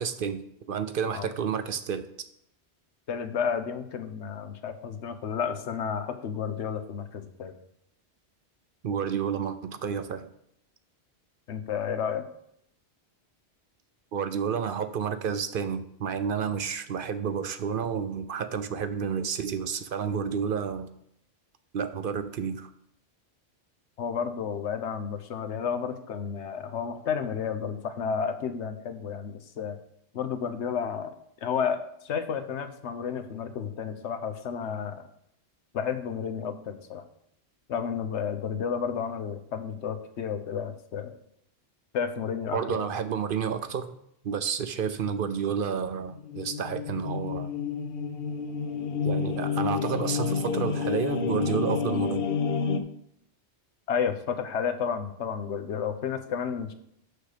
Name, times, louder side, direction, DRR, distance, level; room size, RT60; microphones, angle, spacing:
voice 1, 0.0-2.1 8.8-10.3 14.1-20.9 21.7-22.7 42.5-43.9 44.2-47.5 49.0-52.2, right 7 dB, 60° right, 11 dB, 0.7 m, -30 dB
voice 2, 3.1-7.5 11.5-12.2 24.0-29.8 30.1-31.2 31.4-35.0 35.7-37.0 37.7-41.1 41.9-42.9 53.9-56.7, left 7 dB, 90° left, 8 dB, 1.1 m, -31 dB
sound 1, 46.0-52.8, left 5 dB, 65° left, 0.9 m, -29 dB
6.5 x 6.4 x 5.0 m, 0.74 s
omnidirectional pair, 1.1 m